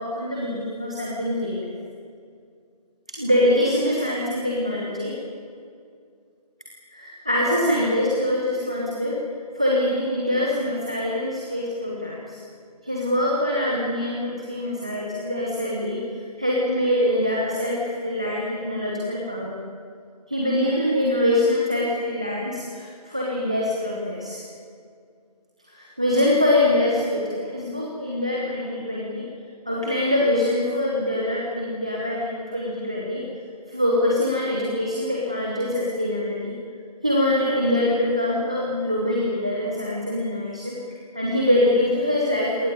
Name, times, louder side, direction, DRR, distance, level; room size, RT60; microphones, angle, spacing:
voice 1, 0.0-1.7 3.1-5.2 6.9-9.2 9.5-12.4 12.8-19.6 20.3-24.4 25.7-29.3 29.7-33.3 33.7-36.5 37.0-40.8 41.1-42.7, left 1 dB, 10° right, -3 dB, 0.9 m, -24 dB
21.0 x 18.0 x 9.3 m, 2.3 s
figure-of-eight pair, 175°, 20 cm